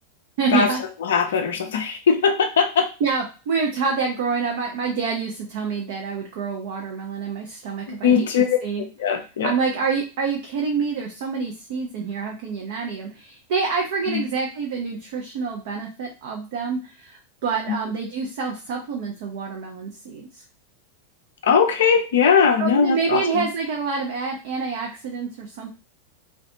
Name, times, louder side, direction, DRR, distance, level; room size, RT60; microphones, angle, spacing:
voice 1, 0.4-0.8 3.0-8.9 9.4-20.4 22.6-25.7, right 5 dB, 50° right, 1 dB, 0.4 m, -27 dB
voice 2, 1.0-2.9 7.9-8.4 9.0-9.5 14.1-14.2 17.7-17.8 21.4-23.5, left 6 dB, 60° left, 4 dB, 0.4 m, -20 dB
2.4 x 2.2 x 2.7 m, 0.33 s
figure-of-eight pair, 90°, 0 cm